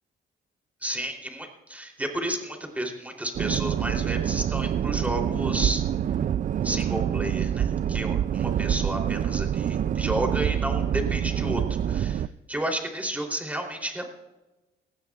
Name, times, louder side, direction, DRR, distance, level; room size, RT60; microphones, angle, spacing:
voice 1, 0.8-5.8 6.6-11.6 11.9-14.0, right 1 dB, 5° right, 2 dB, 3.2 m, -32 dB
sound 1, 3.3-12.3, right 9 dB, 40° right, 0.4 m, -26 dB
19.0 x 15.5 x 2.4 m, 1.1 s
cardioid pair, 90°, 20 cm